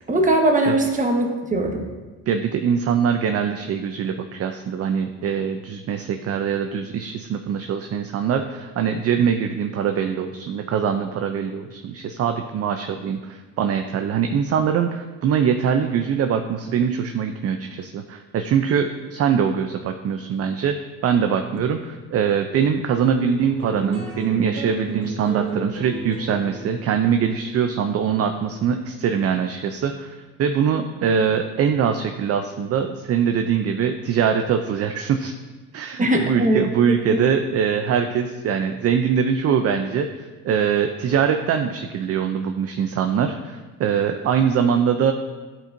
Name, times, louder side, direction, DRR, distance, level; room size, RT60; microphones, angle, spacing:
voice 1, 0.1-1.9 36.0-36.7 37.1-37.2, right 1 dB, 20° right, 2 dB, 1.3 m, -20 dB
voice 2, 2.3-20.8 21.0-35.3 35.7-45.1, right 7 dB, 45° right, 6 dB, 0.5 m, -23 dB
sound 1, 23.0-29.7, right 4 dB, 80° right, 1.9 m, -33 dB
11.0 x 4.4 x 2.6 m, 1.3 s
supercardioid pair, 85°, 36 cm